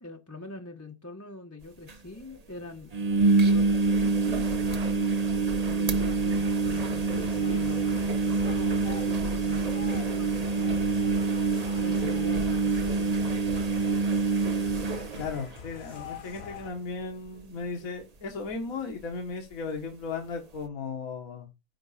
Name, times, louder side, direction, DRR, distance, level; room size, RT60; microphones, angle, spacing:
voice 1, 0.0-2.9 3.4-3.7 4.0-5.1 5.6-10.9 11.8-13.3, left 2 dB, 10° left, 0.9 m, -44 dB
sound 1, 1.6-1.7 1.9-2.0 2.9-16.0 16.4-16.8 17.0-17.1 19.0-19.1, right 4 dB, 35° right, 0.7 m, -26 dB
sound 2, 6.0-16.7, left 7 dB, 50° left, 1.1 m, -44 dB
voice 2, 15.2-21.5, left 4 dB, 65° left, 1.8 m, -36 dB
9.8 x 3.9 x 5.5 m
omnidirectional pair, 1.6 m